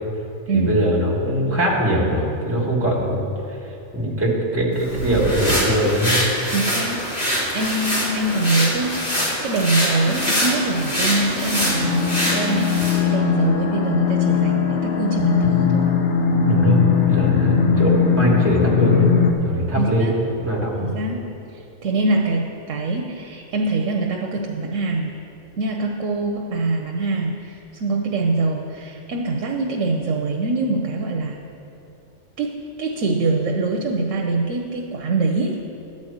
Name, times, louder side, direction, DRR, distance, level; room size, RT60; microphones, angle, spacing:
voice 1, 0.5-3.2 3.9-6.2 16.5-17.9 18.1-19.1 19.4-20.9, right 1 dB, 10° right, -4 dB, 1.5 m, -21 dB
sound 1, 4.8-13.0, equal, 35° left, 2.1 m, -24 dB
voice 2, 6.5-9.1 9.4-16.0 19.8-20.2 20.8-25.2 25.6-31.4 32.4-35.6, right 3 dB, 85° right, 1 dB, 1.1 m, -24 dB
sound 2, 7.0-19.3, left 6 dB, 70° left, 1.1 m, -21 dB
11.0 x 4.3 x 7.9 m, 2.8 s
omnidirectional pair, 1.3 m